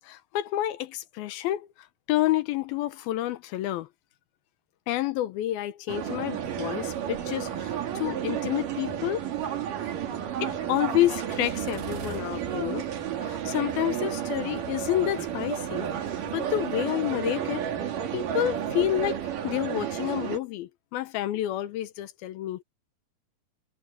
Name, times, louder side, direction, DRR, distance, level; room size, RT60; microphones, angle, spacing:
voice 1, 0.0-1.7 2.1-3.9 4.9-9.3 10.4-12.9 13.2-15.9 16.3-17.7 18.1-22.6, left 14 dB, 80° left, 2.7 m, -29 dB
sound 1, 5.9-20.4, right 9 dB, 60° right, 3.5 m, -32 dB
sound 2, 10.8-16.9, right 4 dB, 75° right, 5.1 m, -47 dB
omnidirectional pair, 4.4 m